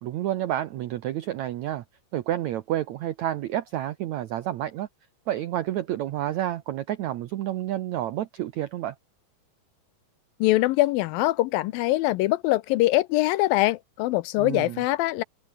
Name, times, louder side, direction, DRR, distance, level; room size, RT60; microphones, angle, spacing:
voice 1, 0.0-1.8 2.1-4.9 5.3-8.9 14.4-14.8, right 12 dB, 80° right, 1.6 m, -29 dB
voice 2, 10.4-15.2, left 17 dB, 80° left, 2.2 m, -23 dB
omnidirectional pair, 4.4 m